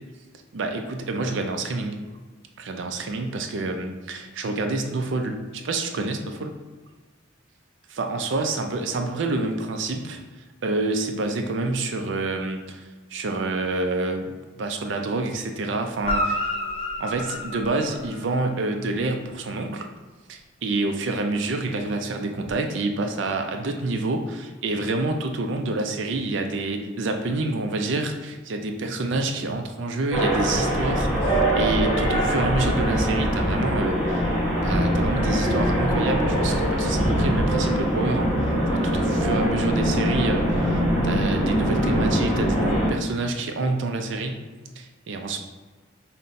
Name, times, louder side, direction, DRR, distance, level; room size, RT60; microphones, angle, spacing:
voice 1, 0.5-2.0 2.6-6.6 8.0-10.2 10.6-12.8 13.1-16.4 17.0-19.9 20.3-34.3 34.6-44.5 44.8-45.4, right 2 dB, 65° right, 5 dB, 0.4 m, -28 dB
Guitar, 16.1-18.6 22.4-22.5, left 1 dB, 30° left, 0.4 m, -29 dB
sound 1, 30.1-42.9, equal, 10° right, 1.1 m, -22 dB
5.5 x 2.2 x 2.5 m, 1.4 s
head